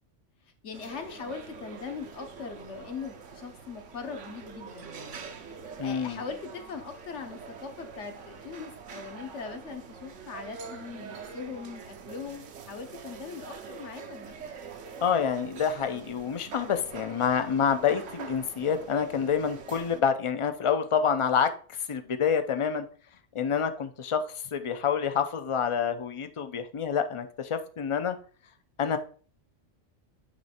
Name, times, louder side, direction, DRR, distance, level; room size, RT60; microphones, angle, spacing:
voice 1, 0.6-5.2 5.8-14.5, left 5 dB, 70° left, 6 dB, 1.3 m, -40 dB
sound 1, 0.7-20.0, right 6 dB, 75° right, 1.2 m, -45 dB
voice 2, 5.8-6.2 15.0-22.9 23.3-28.2 28.8-29.0, left 7 dB, 45° left, 9 dB, 0.4 m, -27 dB
9.2 x 3.1 x 4.3 m, 0.41 s
omnidirectional pair, 1.3 m